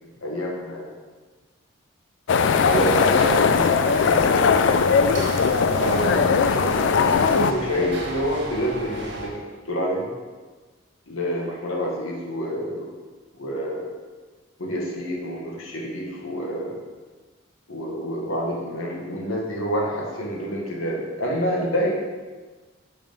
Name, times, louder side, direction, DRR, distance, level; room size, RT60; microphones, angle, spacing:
voice 1, 0.0-0.9 2.4-4.8 5.7-10.1 11.1-12.9 13.4-13.9 14.6-16.8 17.7-21.9, equal, 85° left, -2 dB, 1.5 m, -28 dB
sound 1, 2.3-7.5, left 5 dB, 60° left, 0.3 m, -19 dB
sound 2, 2.6-9.3, right 2 dB, 60° right, 1.3 m, -35 dB
5.5 x 4.9 x 5.3 m, 1.3 s
head